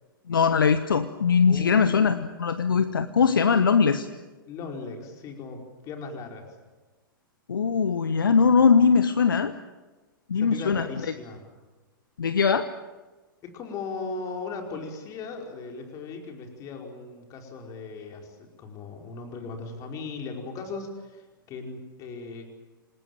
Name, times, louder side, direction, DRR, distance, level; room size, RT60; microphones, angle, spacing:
voice 1, 0.3-4.0 7.5-9.5 10.3-10.9 12.2-12.7, left 6 dB, 70° left, 11 dB, 1.1 m, -21 dB
voice 2, 1.4-2.2 3.5-3.6 4.5-6.5 10.3-11.5 13.4-22.5, left 4 dB, 30° left, 2 dB, 5.1 m, -38 dB
28.0 x 19.0 x 9.2 m, 1.2 s
figure-of-eight pair, 105°, 12 cm